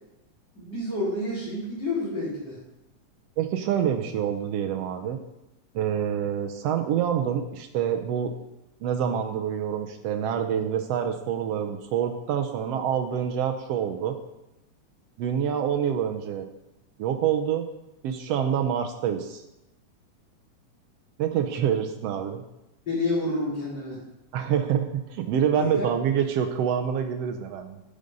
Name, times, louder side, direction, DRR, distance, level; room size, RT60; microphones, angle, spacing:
voice 1, 0.5-2.6 22.9-24.0 25.5-25.9, left 2 dB, 35° left, -6 dB, 4.7 m, -29 dB
voice 2, 3.4-5.2 5.7-8.3 8.8-14.2 15.2-16.5 17.0-17.7 18.0-19.4 21.2-22.4 24.3-27.8, right 8 dB, 80° right, 6 dB, 1.5 m, -26 dB
10.5 x 5.2 x 5.3 m, 0.91 s
omnidirectional pair, 3.4 m